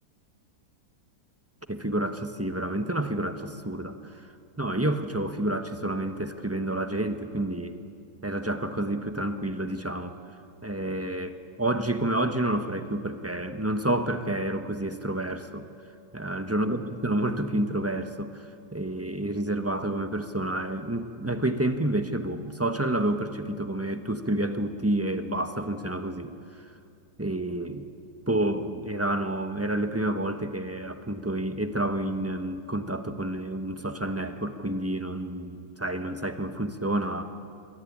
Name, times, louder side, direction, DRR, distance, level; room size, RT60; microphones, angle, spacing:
voice 1, 1.7-4.0 4.6-7.8 8.2-10.2 10.6-15.7 16.1-18.4 18.7-26.3 27.2-27.9 28.3-37.2, right 1 dB, 10° right, 8 dB, 0.8 m, -29 dB
27.5 x 21.5 x 9.9 m, 2.5 s
omnidirectional pair, 2.0 m